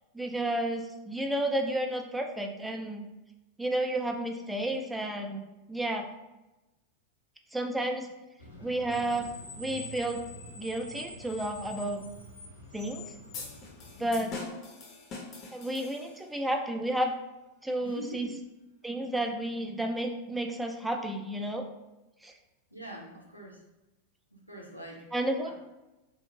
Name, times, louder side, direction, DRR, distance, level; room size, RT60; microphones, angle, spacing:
voice 1, 0.1-3.1 3.6-5.4 5.7-6.1 7.5-8.1 8.6-9.3 9.6-10.2 10.6-12.1 12.7-13.0 14.0-14.3 15.5-17.2 17.6-18.3 18.8-21.6 22.2-22.3 25.1-25.5, right 1 dB, 5° right, 3 dB, 0.3 m, -31 dB
Screech, 8.4-14.2, left 1 dB, 80° left, 0.7 m, -46 dB
sound 1, 13.3-16.4, left 3 dB, 35° left, 0.6 m, -43 dB
voice 2, 14.0-14.4 17.8-18.3 22.7-23.6 24.5-25.0, right 1 dB, 90° right, -2 dB, 0.6 m, -43 dB
2.7 x 2.4 x 2.9 m, 1.0 s
figure-of-eight pair, 90°, 0 cm